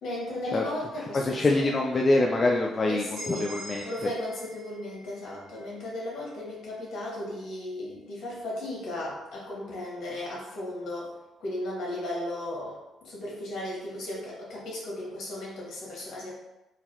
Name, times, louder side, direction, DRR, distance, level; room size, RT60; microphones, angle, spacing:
voice 1, 0.0-1.7 2.9-3.5 3.8-11.1 11.4-16.3, left 1 dB, 70° left, -4 dB, 1.4 m, -35 dB
voice 2, 1.1-3.9, left 2 dB, 35° left, 0 dB, 0.3 m, -25 dB
sound 1, 3.2-7.0, equal, 45° right, 1.3 m, -45 dB
3.8 x 2.6 x 2.9 m, 0.99 s
cardioid pair, 90°, 0 cm